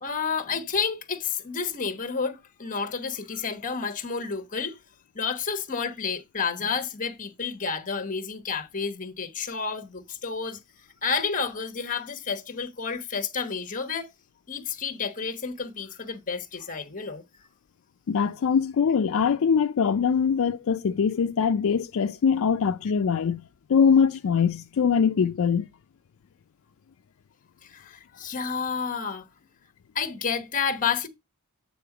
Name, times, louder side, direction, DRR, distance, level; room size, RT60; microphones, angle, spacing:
voice 1, 0.0-4.8 5.1-10.6 11.0-14.1 14.5-17.2 27.6-29.3 29.9-31.1, left 5 dB, 40° left, 1.0 m, -30 dB
voice 2, 18.1-23.4 23.7-25.7, left 6 dB, 65° left, 0.4 m, -22 dB
8.7 x 3.6 x 4.8 m
head